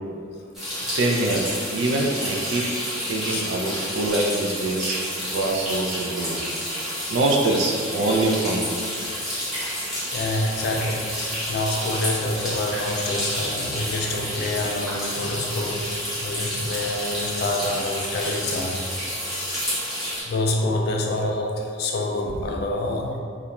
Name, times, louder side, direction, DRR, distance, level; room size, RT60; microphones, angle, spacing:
sound 1, 0.5-20.2, equal, ahead, 0.7 m, -30 dB
voice 1, 0.8-2.6 3.1-5.0 5.3-6.4 7.1-8.8, right 2 dB, 60° right, 0 dB, 0.4 m, -24 dB
voice 2, 10.1-11.1 11.5-15.9 16.2-18.8 20.2-23.2, left 2 dB, 55° left, 1 dB, 0.3 m, -27 dB
2.5 x 2.1 x 2.9 m, 2.2 s
head